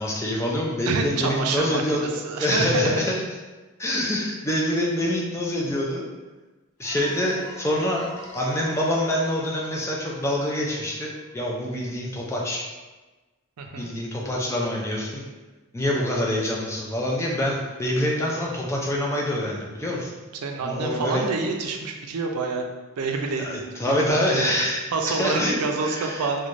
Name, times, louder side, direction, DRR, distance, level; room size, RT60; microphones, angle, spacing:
voice 1, 0.0-2.1 2.4-3.1 3.8-6.0 6.8-8.1 8.3-12.6 13.8-15.2 15.7-20.1 20.6-21.2 23.4-24.8 25.1-26.2, left 1 dB, 10° left, -3 dB, 0.3 m, -26 dB
voice 2, 0.9-2.9 13.6-13.9 20.4-22.6 23.0-24.6 24.9-26.5, right 4 dB, 90° right, 3 dB, 0.4 m, -27 dB
sound 1, 6.8-11.4, right 1 dB, 85° left, 0.6 m, -43 dB
3.1 x 2.2 x 2.5 m, 1.2 s
head